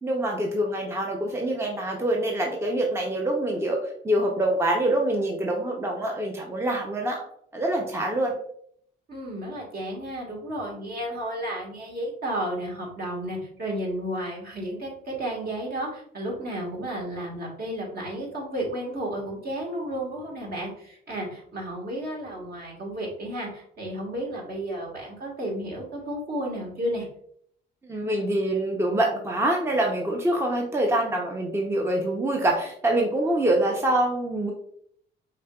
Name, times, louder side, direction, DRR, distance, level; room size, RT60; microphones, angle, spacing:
voice 1, 0.0-7.2 7.5-8.3 27.8-34.5, right 1 dB, 15° right, 0 dB, 0.6 m, -25 dB
voice 2, 9.1-27.0, right 1 dB, 50° right, -1 dB, 1.5 m, -32 dB
5.0 x 2.8 x 2.2 m, 0.66 s
cardioid pair, 90°, 20 cm